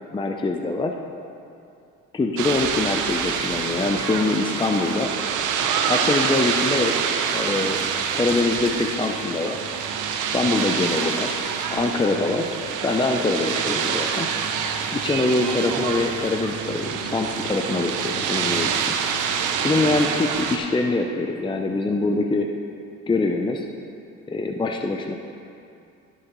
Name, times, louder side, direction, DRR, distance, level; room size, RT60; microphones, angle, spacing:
voice 1, 0.1-0.9 2.1-5.1 5.9-7.0 7.3-7.9 8.1-9.6 10.2-11.4 11.7-12.5 12.8-14.3 14.9-18.9 19.6-22.5 23.1-23.6 24.3-25.1, left 3 dB, 15° left, 3 dB, 0.5 m, -24 dB
sound 1, 2.4-20.6, right 7 dB, 85° right, 0.7 m, -26 dB
14.5 x 6.5 x 3.1 m, 2.6 s
cardioid pair, 90°, 30 cm